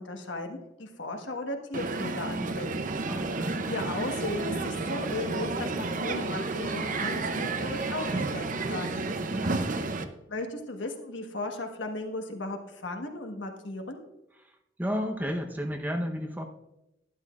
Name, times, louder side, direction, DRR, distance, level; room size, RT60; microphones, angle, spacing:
voice 1, 0.0-2.8 3.7-9.0 10.3-14.0, left 2 dB, 90° left, 3 dB, 1.4 m, -36 dB
Crowd, 1.7-10.0, right 3 dB, 45° right, 0.7 m, -31 dB
voice 2, 3.0-3.6 9.3-9.7 14.4-16.4, equal, 10° right, 3 dB, 0.9 m, -33 dB
11.5 x 11.5 x 2.5 m, 0.88 s
head